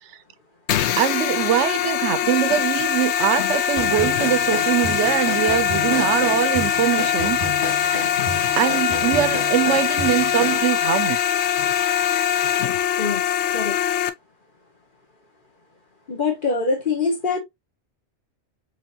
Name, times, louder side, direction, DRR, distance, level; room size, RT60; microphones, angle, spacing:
sound 1, 0.7-14.1, left 9 dB, 75° left, 0.8 m, -22 dB
voice 1, 1.0-7.4 7.8-8.0 8.6-11.2, right 12 dB, 80° right, 0.9 m, -22 dB
sound 2, 3.8-10.6, equal, 20° left, 1.6 m, -32 dB
voice 2, 16.1-17.4, left 4 dB, 45° left, 1.7 m, -23 dB
4.9 x 3.3 x 2.7 m
omnidirectional pair, 1.2 m